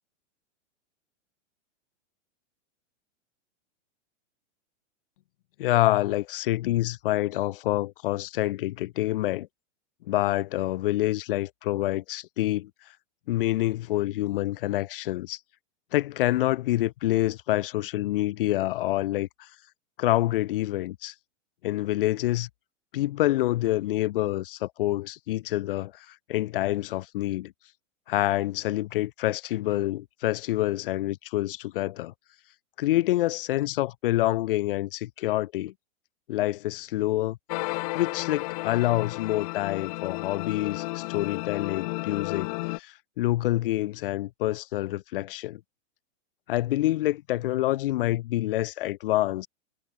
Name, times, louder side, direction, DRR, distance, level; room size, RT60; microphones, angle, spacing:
voice 1, 5.6-9.5 10.1-12.7 13.3-15.4 15.9-19.5 20.0-21.1 21.6-22.5 22.9-27.5 28.1-32.1 32.8-35.7 36.3-37.4 37.9-45.6 46.5-49.5, left 16 dB, 45° left, 1.0 m, -27 dB
sound 1, 37.5-42.8, left 25 dB, 30° left, 1.2 m, -33 dB
supercardioid pair, 170°, 37 cm